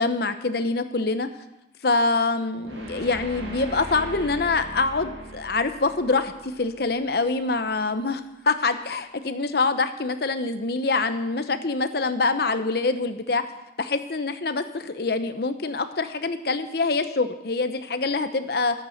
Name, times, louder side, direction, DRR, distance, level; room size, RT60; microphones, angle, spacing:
voice 1, 0.0-1.3 1.8-13.4 13.8-18.8, left 3 dB, 60° left, 10 dB, 0.9 m, -25 dB
sound 1, 2.6-7.7, right 1 dB, 80° right, 2.3 m, -40 dB
12.5 x 9.1 x 6.5 m, 0.92 s
head